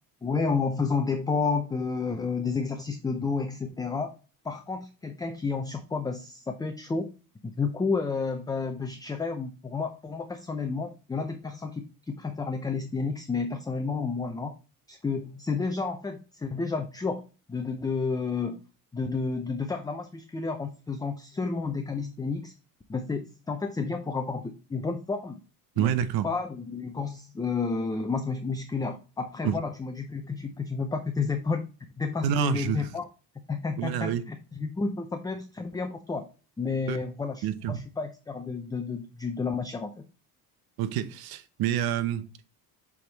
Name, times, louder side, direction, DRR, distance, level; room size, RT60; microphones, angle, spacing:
voice 1, 0.2-4.1 4.4-7.1 7.4-14.5 14.9-17.2 17.5-18.6 18.9-22.5 22.9-25.4 25.8-25.9 26.2-31.7 32.0-33.1 33.5-36.3 36.6-40.0, left 4 dB, 10° left, 0.5 m, -31 dB
voice 2, 25.8-26.3 29.4-29.6 32.2-32.9 33.8-34.2 36.9-37.0 37.4-37.8 40.8-42.5, right 10 dB, 85° right, 0.8 m, -28 dB
7.8 x 3.6 x 3.9 m
cardioid pair, 145°, 36 cm